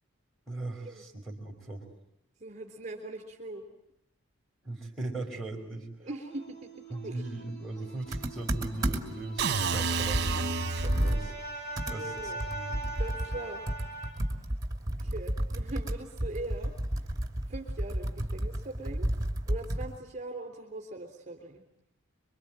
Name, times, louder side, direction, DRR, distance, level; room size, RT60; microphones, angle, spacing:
voice 1, 0.5-1.8 4.6-5.9 6.9-11.3 11.9-12.8, right 2 dB, ahead, 0 dB, 5.2 m, -39 dB
voice 2, 2.4-3.6 6.0-6.7 7.0-7.2 11.9-12.4 13.0-13.6 14.9-16.7 17.5-19.1 19.5-21.6, right 2 dB, 35° right, 3 dB, 3.5 m, -41 dB
sound 1, 6.1-14.1, right 2 dB, 35° left, 7.7 m, -42 dB
Computer keyboard, 8.1-9.3 9.7-9.8 10.1-20.0, right 1 dB, 15° right, 2.7 m, -32 dB
sound 2, 9.4-11.3, right 4 dB, 50° right, 1.1 m, -30 dB
26.5 x 24.5 x 8.9 m, 0.80 s
head